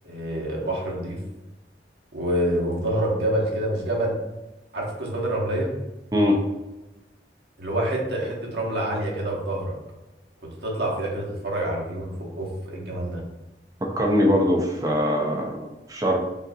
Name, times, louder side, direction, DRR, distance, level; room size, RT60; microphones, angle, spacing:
voice 1, 0.0-1.2 2.1-4.2 4.7-5.7 7.6-9.7 10.6-13.2, right 1 dB, 70° right, -2 dB, 1.1 m, -27 dB
voice 2, 13.8-16.2, left 1 dB, 20° right, 0 dB, 0.5 m, -22 dB
5.3 x 2.5 x 2.6 m, 1.0 s
head